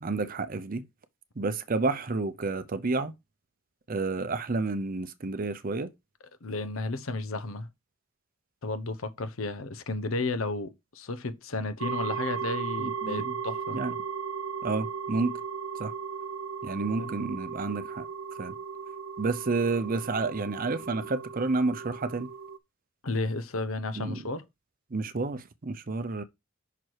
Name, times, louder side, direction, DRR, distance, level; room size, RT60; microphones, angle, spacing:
voice 1, 0.0-0.9 1.4-3.1 3.9-5.9 12.8-13.3 13.7-13.9 14.6-15.4 15.8-15.9 16.6-18.1 18.4-18.5 19.2-22.3 24.0-24.2 24.9-26.2, right 3 dB, 40° right, 0.6 m, -30 dB
voice 2, 6.4-7.7 8.6-13.8 17.0-17.1 23.0-24.4, left 3 dB, 80° left, 0.9 m, -33 dB
sound 1, 11.8-22.6, right 6 dB, 80° right, 0.6 m, -36 dB
5.9 x 4.7 x 4.6 m
head